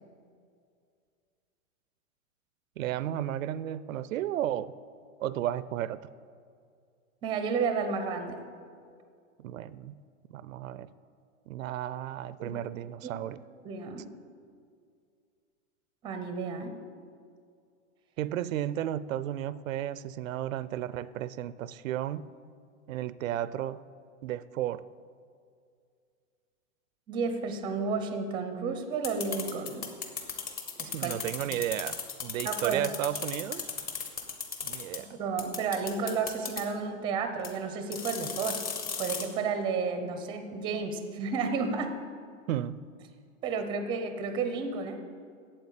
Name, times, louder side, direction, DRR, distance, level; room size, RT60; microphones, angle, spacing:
voice 1, 2.8-4.7 5.2-6.0 9.4-10.0 10.3-10.9 11.5-13.4 18.2-22.3 22.9-23.8 24.2-24.8 30.9-33.7 34.6-35.1 42.5-42.8, right 12 dB, 75° right, 17 dB, 0.5 m, -33 dB
voice 2, 7.2-8.4 12.4-12.5 13.0-13.1 13.6-14.1 16.0-16.8 27.1-29.9 30.8-31.1 31.5-31.6 32.4-32.8 35.0-38.6 39.0-42.0 43.4-45.0, right 5 dB, 10° right, 7 dB, 0.6 m, -32 dB
sound 1, 29.0-35.0 35.4-36.6 37.4-37.5 37.9-39.3, left 6 dB, 20° left, 1.1 m, -35 dB
8.7 x 7.8 x 8.4 m, 2.2 s
hypercardioid pair, 155°, 40 cm